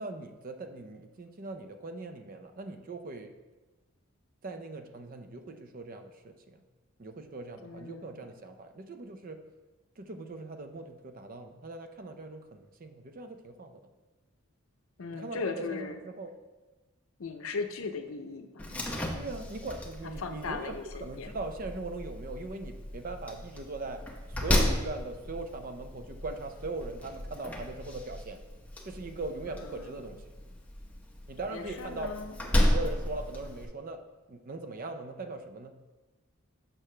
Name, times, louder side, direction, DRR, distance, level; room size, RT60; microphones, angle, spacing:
voice 1, 0.0-3.3 4.4-6.6 7.0-9.4 10.0-13.8 15.1-16.3 19.1-20.7 21.0-24.0 24.4-28.4 28.8-30.2 31.3-32.1 32.4-34.0 34.3-35.7, right 2 dB, 40° right, 7 dB, 0.5 m, -40 dB
voice 2, 7.6-8.3 15.0-16.0 17.2-18.8 20.2-21.3 29.5-30.2 31.5-32.4, left 4 dB, 75° left, 7 dB, 0.6 m, -38 dB
Slam, 18.6-33.6, left 1 dB, 5° left, 0.8 m, -34 dB
6.6 x 6.0 x 3.3 m, 1.2 s
head